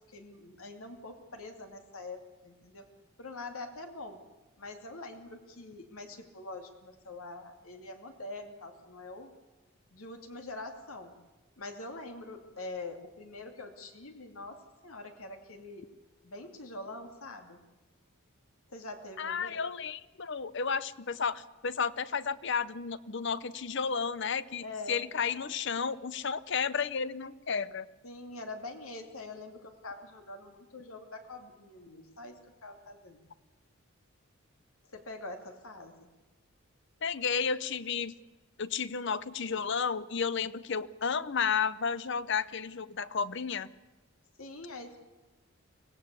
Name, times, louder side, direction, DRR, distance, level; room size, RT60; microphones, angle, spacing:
voice 1, 0.1-2.9 3.2-4.2 4.6-9.3 9.9-11.1 11.6-15.9 16.2-17.6 18.7-19.6 24.6-25.0 28.0-33.2 34.9-35.9 44.4-45.0, left 2 dB, 80° left, 5 dB, 2.6 m, -44 dB
voice 2, 19.2-27.9 37.0-38.2 38.6-43.7, left 6 dB, 55° left, 17 dB, 0.7 m, -32 dB
24.5 x 17.5 x 8.3 m, 1.2 s
head